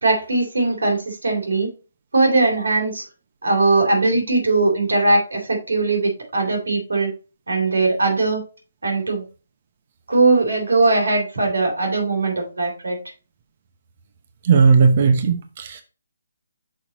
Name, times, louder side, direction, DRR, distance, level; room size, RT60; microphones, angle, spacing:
voice 1, 0.0-1.7 2.1-3.0 3.4-7.1 7.5-8.4 8.8-9.3 10.1-13.0, right 3 dB, 80° right, 2 dB, 3.3 m, -20 dB
voice 2, 14.4-15.8, right 5 dB, 40° right, 6 dB, 0.9 m, -16 dB
6.3 x 4.6 x 4.0 m, 0.33 s
hypercardioid pair, 155°, 0 cm